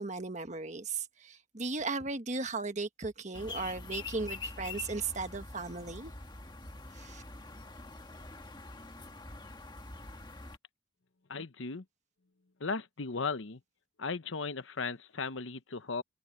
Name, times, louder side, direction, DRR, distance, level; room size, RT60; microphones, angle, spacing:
voice 1, 0.0-6.1 6.9-7.2, right 3 dB, 40° right, 1.4 m, -36 dB
sound 1, 3.3-10.6, left 3 dB, 25° left, 1.8 m, -45 dB
voice 2, 11.3-11.8 12.6-13.6 14.0-16.0, left 4 dB, 90° left, 1.0 m, -36 dB
head